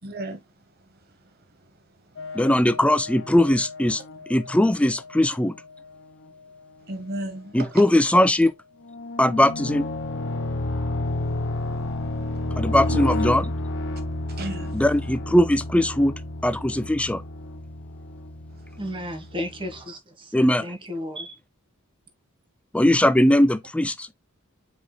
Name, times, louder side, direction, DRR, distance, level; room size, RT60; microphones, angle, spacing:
voice 1, 0.0-0.4 0.9-1.0 6.9-7.8 12.9-13.4 14.3-14.8 18.5-18.6, right 2 dB, 45° right, 1.1 m, -34 dB
sound 1, 2.2-6.7 7.2-7.3 8.8-19.8, left 2 dB, 55° left, 1.0 m, -32 dB
voice 2, 2.3-4.0 4.3-5.6 7.5-8.5 9.2-9.9 12.6-13.4 14.7-16.1 16.4-17.2 20.3-20.7 22.7-24.1, left 1 dB, 5° left, 0.5 m, -20 dB
voice 3, 18.8-21.4, equal, 25° right, 1.3 m, -34 dB
8.8 x 4.9 x 2.2 m
head